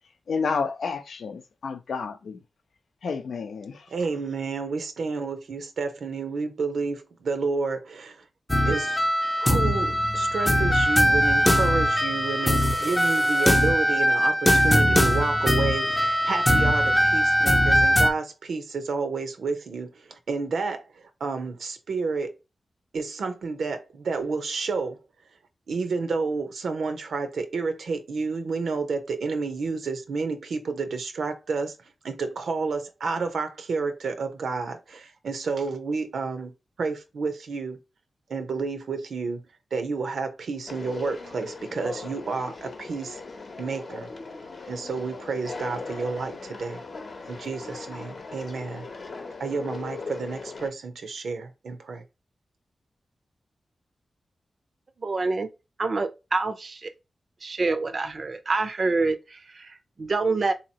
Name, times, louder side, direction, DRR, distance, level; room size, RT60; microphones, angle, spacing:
voice 1, 0.3-2.4 3.0-3.9, left 5 dB, 80° left, 0.5 m, -30 dB
voice 2, 3.9-8.2 8.6-9.1 9.4-22.3 22.9-25.0 25.7-31.7 32.0-36.5 36.8-37.8 38.3-39.4 39.7-43.2 43.6-44.1 44.7-46.8 47.3-48.8 49.4-52.0, right 4 dB, 80° right, 0.7 m, -30 dB
sound 1, 8.5-18.1, equal, 10° left, 0.5 m, -21 dB
Conversation, 40.7-50.7, left 3 dB, 50° left, 0.8 m, -39 dB
voice 3, 55.0-55.5 55.8-56.9 57.4-60.5, right 3 dB, 45° right, 0.5 m, -26 dB
3.9 x 2.9 x 2.8 m
wide cardioid pair, 135°, 0 cm